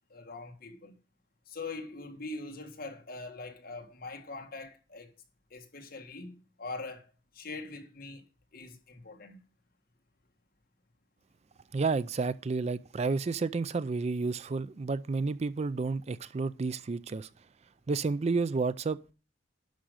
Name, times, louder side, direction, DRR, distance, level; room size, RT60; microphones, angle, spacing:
voice 1, 0.1-1.0 1.5-5.1 5.5-8.2 8.5-9.4, left 3 dB, 50° left, 1.7 m, -43 dB
voice 2, 11.7-17.3 17.9-19.0, right 4 dB, 35° right, 0.4 m, -31 dB
11.5 x 5.1 x 6.4 m
head